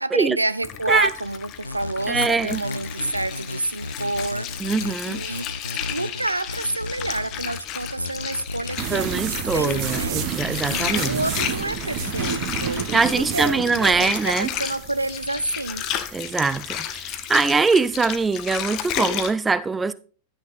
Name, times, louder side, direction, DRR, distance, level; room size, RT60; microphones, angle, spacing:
voice 1, 0.0-4.6 5.0-5.5 5.9-10.2 10.7-15.9, right 2 dB, 85° right, 0.3 m, -28 dB
Water, 0.6-19.3, left 10 dB, 40° left, 0.8 m, -33 dB
sound 1, 1.6-12.3, left 2 dB, 85° left, 0.4 m, -34 dB
voice 2, 2.1-2.6 4.6-5.2 8.9-11.2 12.9-14.5 16.1-19.9, right 4 dB, 15° right, 0.6 m, -22 dB
sound 2, 8.8-18.9, right 10 dB, 40° right, 1.1 m, -32 dB
11.0 x 6.3 x 3.9 m
figure-of-eight pair, 90°, 0 cm